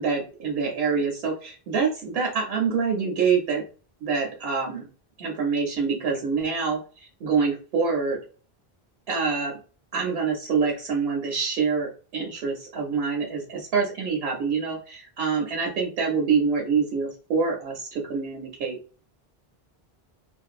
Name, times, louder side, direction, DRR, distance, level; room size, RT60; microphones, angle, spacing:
voice 1, 0.0-3.6 4.0-4.9 5.2-6.8 7.2-8.2 9.1-9.5 9.9-18.8, right 5 dB, 75° right, 0 dB, 0.8 m, -26 dB
2.5 x 2.2 x 2.4 m, 0.38 s
omnidirectional pair, 1.0 m